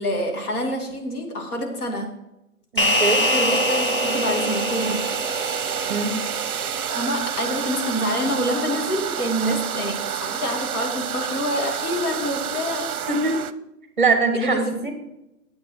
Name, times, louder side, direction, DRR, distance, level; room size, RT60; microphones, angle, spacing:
voice 1, 0.0-2.1 3.2-5.1 6.9-12.9 14.3-14.7, equal, 70° left, 1 dB, 2.8 m, -27 dB
voice 2, 2.7-3.2 5.9-6.1 13.1-13.4 14.0-14.9, right 4 dB, 35° right, 6 dB, 1.1 m, -22 dB
sound 1, 2.8-7.4, left 1 dB, 40° left, 0.4 m, -25 dB
sound 2, 2.8-13.5, right 9 dB, 65° right, 0.7 m, -29 dB
9.5 x 8.1 x 4.4 m, 0.90 s
hypercardioid pair, 170°, 46 cm